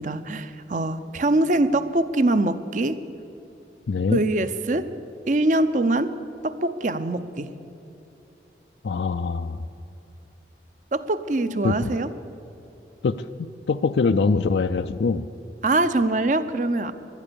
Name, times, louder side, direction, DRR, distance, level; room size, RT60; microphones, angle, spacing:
voice 1, 0.0-3.0 4.1-4.9 5.3-6.1 6.4-7.5 10.9-12.1 15.6-16.9, right 2 dB, 45° right, 12 dB, 0.6 m, -23 dB
voice 2, 3.9-4.2 8.8-9.6 11.6-11.9 13.0-15.3, left 4 dB, 75° left, 8 dB, 0.4 m, -23 dB
17.5 x 11.5 x 6.9 m, 3.0 s
head